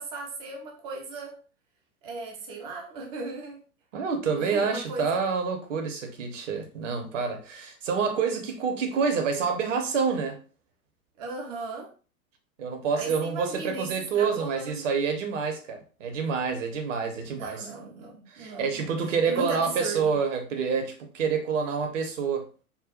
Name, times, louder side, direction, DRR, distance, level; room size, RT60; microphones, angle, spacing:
voice 1, 0.0-1.4 2.0-3.6 4.4-5.2 11.2-11.9 12.9-14.8 17.3-18.9 19.2-20.1, right 3 dB, 15° right, 0.4 m, -37 dB
voice 2, 3.9-10.4 12.6-17.7 18.3-22.5, right 5 dB, 55° right, 1.0 m, -28 dB
5.5 x 2.2 x 2.4 m
figure-of-eight pair, 95°, 45 cm